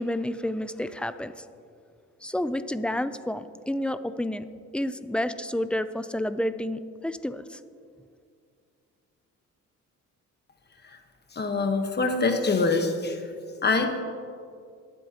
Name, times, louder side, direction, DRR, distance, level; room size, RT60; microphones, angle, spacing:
voice 1, 0.0-1.4 2.2-4.5 4.7-7.6, left 1 dB, 5° left, 12 dB, 0.4 m, -30 dB
voice 2, 11.3-13.2 13.6-14.0, left 3 dB, 35° left, 5 dB, 1.2 m, -24 dB
20.0 x 8.0 x 2.9 m, 2.3 s
cardioid pair, 90°, 30 cm